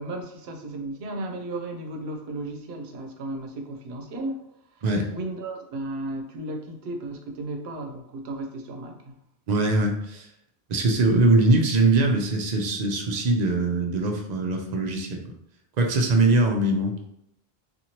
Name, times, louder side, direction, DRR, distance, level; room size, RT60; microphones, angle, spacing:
voice 1, 0.0-4.8 5.1-9.2, right 2 dB, 85° right, 4 dB, 0.8 m, -35 dB
voice 2, 9.5-10.3 10.7-15.3 15.8-16.9, right 2 dB, 55° right, 3 dB, 0.5 m, -22 dB
2.8 x 2.5 x 2.8 m, 0.77 s
omnidirectional pair, 1.0 m